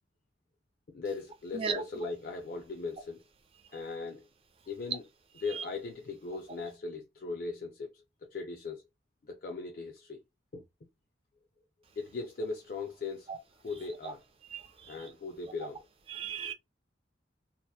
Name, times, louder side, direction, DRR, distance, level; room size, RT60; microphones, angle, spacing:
voice 1, 0.9-3.2 3.7-4.3 4.7-5.0 5.4-8.8 9.2-10.2 10.5-10.6 12.0-13.3 13.6-14.2 14.8-15.9, left 4 dB, 50° left, 0.4 m, -39 dB
voice 2, 14.5-14.9 16.1-16.5, right 5 dB, 30° right, 0.4 m, -35 dB
2.8 x 2.0 x 2.2 m
head